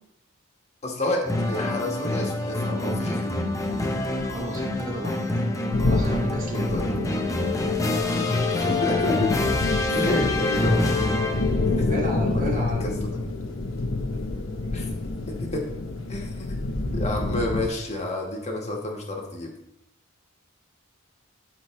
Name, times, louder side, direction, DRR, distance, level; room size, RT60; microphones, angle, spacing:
voice 1, 0.8-3.4 6.5-7.0 8.1-9.6 9.9-11.1 11.8-11.9 12.3-13.2 14.7-14.9 15.3-15.7 16.1-16.7 16.9-19.5, left 1 dB, 35° left, 0 dB, 1.5 m, -30 dB
sound 1, 1.2-11.7, left 2 dB, 15° left, 0.7 m, -26 dB
voice 2, 4.2-5.2 5.8-6.7 9.9-10.2 11.9-13.0, right 1 dB, 40° right, -3 dB, 2.3 m, -32 dB
sound 2, 5.7-17.7, left 2 dB, 70° left, 0.9 m, -28 dB
sound 3, 6.6-14.3, left 9 dB, 50° left, 0.5 m, -34 dB
12.5 x 4.4 x 3.2 m, 0.81 s
head